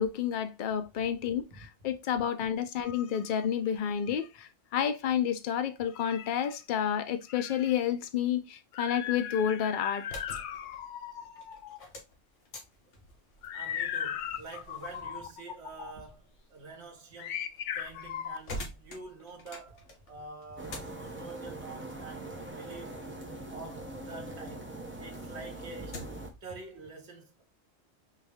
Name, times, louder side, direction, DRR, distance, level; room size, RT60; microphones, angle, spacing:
voice 1, 0.0-11.8 13.4-14.4 14.7-15.2 15.8-15.9 17.2-18.4, left 9 dB, 55° left, 0.6 m, -31 dB
sound 1, 9.9-24.6 25.0-26.4, left 1 dB, 75° left, 1.4 m, -48 dB
voice 2, 13.5-17.4 17.8-22.9 23.5-26.0 26.4-27.4, right 3 dB, 60° right, 1.5 m, -47 dB
sound 2, 20.6-26.3, right 1 dB, 10° right, 0.7 m, -42 dB
4.3 x 2.6 x 3.4 m
omnidirectional pair, 1.3 m